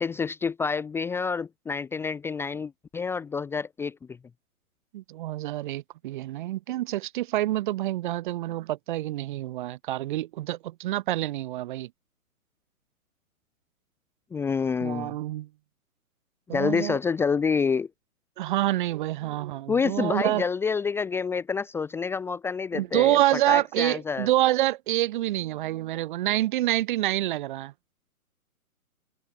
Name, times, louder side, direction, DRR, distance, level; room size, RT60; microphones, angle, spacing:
voice 1, 0.0-4.0 14.3-15.1 16.5-17.9 19.7-24.3, left 5 dB, 5° left, 1.1 m, -28 dB
voice 2, 4.9-11.9 14.8-15.5 16.5-17.0 18.4-20.4 22.7-27.7, right 15 dB, 35° right, 1.8 m, -27 dB
open air
figure-of-eight pair, 140°, 44 cm